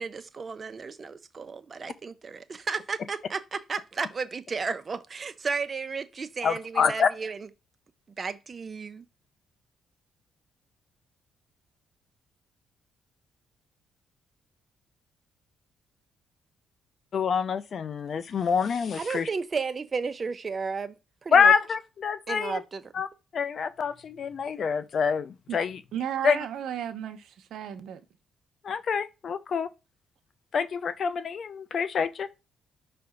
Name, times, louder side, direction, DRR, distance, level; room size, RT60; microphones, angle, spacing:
voice 1, 0.0-7.5 8.2-9.0 18.9-21.0 21.2-21.5 22.3-22.9, right 5 dB, 35° right, 0.7 m, -33 dB
voice 2, 6.4-7.1 17.1-19.3 21.3-22.6 22.9-23.1 23.3-25.8 26.2-26.4 28.6-29.7 30.5-32.3, left 6 dB, 55° left, 0.6 m, -26 dB
voice 3, 25.9-28.0, right 9 dB, 75° right, 0.9 m, -34 dB
5.7 x 3.4 x 5.2 m
cardioid pair, 90°, 0 cm